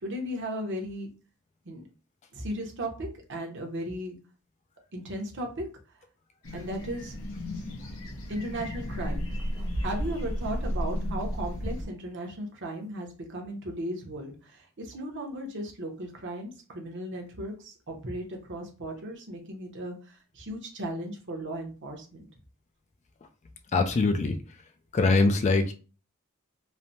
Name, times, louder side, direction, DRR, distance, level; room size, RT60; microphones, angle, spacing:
voice 1, 0.0-1.1 1.7-1.8 2.3-4.2 4.9-5.6 6.5-7.1 8.3-9.3 9.8-19.9 20.3-22.3, right 1 dB, 55° right, 2 dB, 0.8 m, -36 dB
sound 1, 6.4-11.9, equal, 70° left, 0.8 m, -33 dB
voice 2, 23.7-24.4 24.9-25.7, left 3 dB, 35° left, 6 dB, 0.3 m, -23 dB
3.1 x 2.1 x 2.6 m, 0.35 s
head